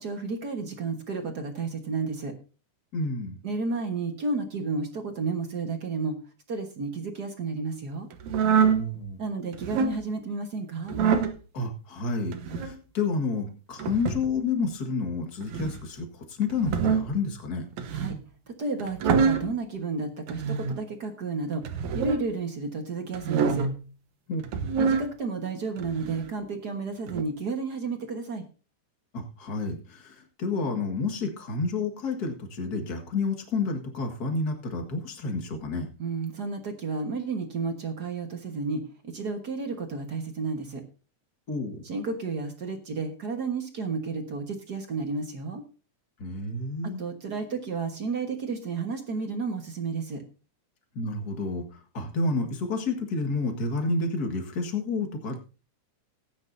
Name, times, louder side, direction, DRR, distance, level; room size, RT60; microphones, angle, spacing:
voice 1, 0.0-2.3 3.4-6.2 6.5-8.1 9.2-11.0 17.9-18.2 18.5-23.7 24.8-28.4 36.0-40.8 41.8-45.6 47.0-50.2, right 4 dB, 45° right, 5 dB, 1.4 m, -32 dB
voice 2, 2.9-3.4 8.7-9.2 11.5-16.1 16.4-17.7 24.3-24.4 29.1-35.9 41.5-41.8 46.2-47.0 51.0-51.6 51.9-55.4, left 3 dB, 35° left, 4 dB, 1.8 m, -30 dB
sound 1, 8.2-8.8 9.5-10.0 10.9-11.3 12.3-12.7 13.8-14.3 15.4-15.8 16.5-17.1 17.8-18.2 18.8-19.5 20.3-20.8 21.6-22.2 23.1-23.7 24.4-25.1 25.8-26.3 27.1-27.2, right 6 dB, 75° right, 2.4 m, -25 dB
18.0 x 9.9 x 2.7 m, 0.34 s
omnidirectional pair, 3.5 m